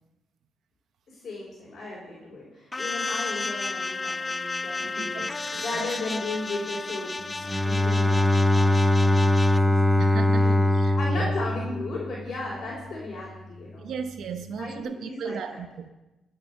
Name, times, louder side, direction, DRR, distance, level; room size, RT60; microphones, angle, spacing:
voice 1, 1.1-9.8 10.3-13.9 14.6-15.6, left 2 dB, 50° left, -6 dB, 4.5 m, -36 dB
sound 1, 2.7-9.6, left 3 dB, 20° left, 0.5 m, -32 dB
voice 2, 4.8-5.9 10.0-11.3 13.8-15.9, right 6 dB, 70° right, 8 dB, 0.8 m, -36 dB
Bowed string instrument, 7.4-12.4, left 1 dB, ahead, 0.8 m, -22 dB
16.0 x 6.8 x 6.8 m, 1.0 s
cardioid pair, 90°, 0 cm